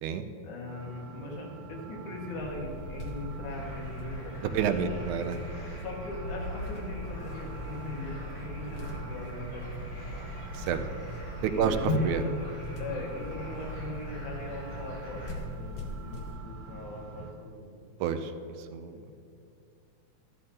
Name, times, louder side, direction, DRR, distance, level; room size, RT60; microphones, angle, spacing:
voice 1, 0.4-5.0 5.5-5.6 5.8-10.5 11.4-12.2 12.8-17.8 18.9-19.2, left 2 dB, 90° left, -2 dB, 3.1 m, -40 dB
sound 1, 0.7-17.3, right 5 dB, 70° right, 1.8 m, -46 dB
sound 2, 2.4-16.4, left 1 dB, 70° left, 1.0 m, -38 dB
sound 3, 3.5-15.3, left 1 dB, 35° left, 3.6 m, -49 dB
voice 2, 4.4-5.4 10.5-10.8 11.4-12.2 18.0-18.3 18.7-19.0, right 7 dB, 90° right, 9 dB, 2.1 m, -29 dB
13.0 x 12.5 x 2.8 m, 2.4 s
omnidirectional pair, 3.4 m